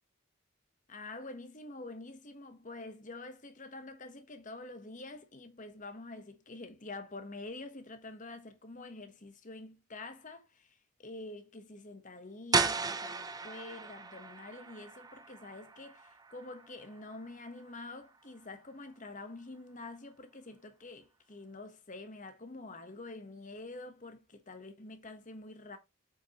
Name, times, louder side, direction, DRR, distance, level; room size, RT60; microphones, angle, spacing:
voice 1, 0.9-25.8, left 2 dB, 35° left, 1.2 m, -47 dB
sound 1, 12.5-18.2, right 4 dB, 20° right, 0.6 m, -36 dB
7.6 x 5.4 x 3.0 m
head